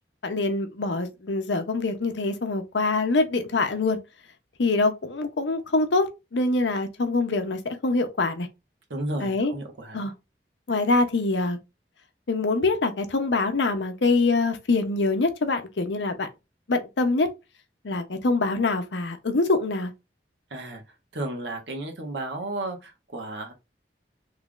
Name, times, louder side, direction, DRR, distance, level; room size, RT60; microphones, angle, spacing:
voice 1, 0.2-4.0 4.6-8.5 9.2-9.5 9.9-10.1 10.7-11.6 12.3-16.3 16.7-17.3 17.8-19.9, left 3 dB, 85° left, 0.7 m, -24 dB
voice 2, 8.9-10.1 20.5-20.8 21.1-23.5, right 2 dB, 80° right, 1.2 m, -33 dB
3.2 x 2.5 x 3.7 m
head